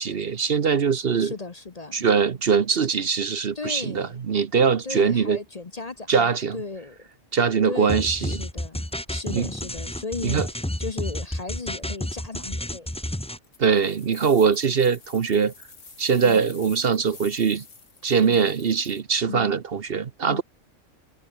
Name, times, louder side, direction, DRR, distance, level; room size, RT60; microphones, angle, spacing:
voice 1, 0.0-1.3 1.9-5.4 6.1-6.6 7.3-8.4 9.3-9.5 10.2-10.5 13.6-15.5 16.0-17.6 18.0-20.4, right 6 dB, 50° right, 1.1 m, -22 dB
voice 2, 1.2-2.0 3.5-4.2 4.8-7.1 7.6-12.9 16.2-16.5 18.2-18.5 19.3-19.5 20.3-20.4, left 3 dB, 35° left, 1.0 m, -36 dB
sound 1, 7.9-13.4, left 1 dB, 5° left, 0.9 m, -30 dB
sound 2, 13.4-19.0, left 4 dB, 70° left, 2.9 m, -47 dB
omnidirectional pair, 1.3 m